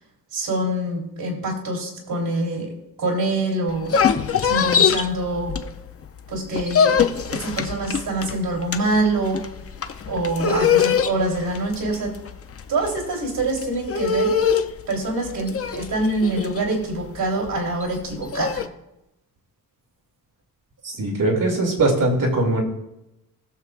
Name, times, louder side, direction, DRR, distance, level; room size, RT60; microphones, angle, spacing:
voice 1, 0.3-4.0 4.4-5.5 6.3-7.0 7.3-9.4 10.1-12.1 12.7-14.3 14.9-18.6, right 2 dB, 85° right, -2 dB, 3.3 m, -25 dB
sound 1, 3.7-6.0 6.3-18.7, left 7 dB, 40° left, 0.6 m, -23 dB
voice 2, 20.8-22.6, right 2 dB, 65° right, 0 dB, 2.6 m, -21 dB
20.0 x 7.2 x 2.5 m, 0.88 s
wide cardioid pair, 150°, 35 cm